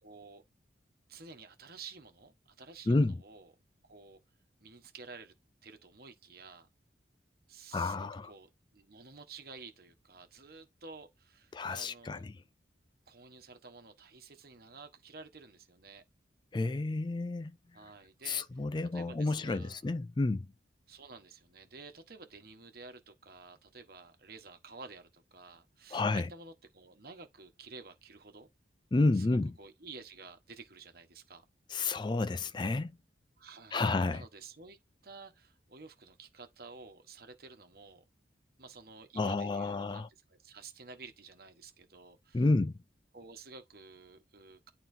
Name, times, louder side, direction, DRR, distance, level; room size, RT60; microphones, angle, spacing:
voice 1, 0.0-0.4 1.1-3.5 3.8-4.2 4.6-5.3 5.6-6.7 7.5-12.2 13.1-16.0 17.7-18.6 18.9-19.8 20.9-28.5 29.1-31.4 33.4-34.8 35.0-38.0 38.6-42.5 43.1-44.7, right 4 dB, 55° right, 1.3 m, -51 dB
voice 2, 7.7-8.3 11.5-12.3 16.5-17.5 18.3-20.5 25.9-26.3 28.9-29.5 31.7-33.0 33.7-34.2 39.2-40.1 42.3-42.7, left 2 dB, 25° left, 0.3 m, -30 dB
11.5 x 3.9 x 2.8 m
head